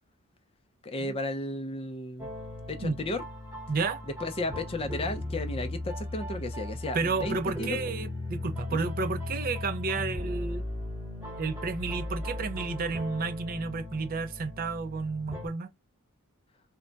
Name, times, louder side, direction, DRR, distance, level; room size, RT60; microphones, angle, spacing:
voice 1, 0.8-2.3 2.7-3.2 4.2-7.8 8.7-8.8, left 2 dB, 25° left, 0.5 m, -34 dB
sound 1, 2.2-15.5, left 1 dB, 10° right, 0.9 m, -37 dB
voice 2, 3.7-4.0 6.9-10.6 11.4-15.7, right 4 dB, 40° right, 0.4 m, -31 dB
2.2 x 2.2 x 3.8 m
head